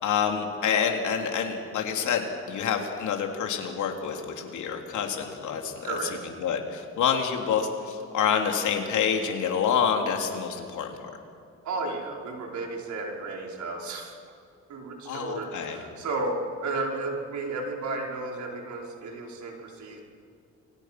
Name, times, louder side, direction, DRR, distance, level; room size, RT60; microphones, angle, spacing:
voice 1, 0.0-6.0 6.2-11.1 15.0-15.8, left 7 dB, 75° left, 3 dB, 3.4 m, -27 dB
voice 2, 5.8-6.2 11.6-14.1 14.7-20.0, right 3 dB, 70° right, 0 dB, 5.3 m, -33 dB
29.5 x 23.0 x 6.2 m, 2.4 s
cardioid pair, 90°, 30 cm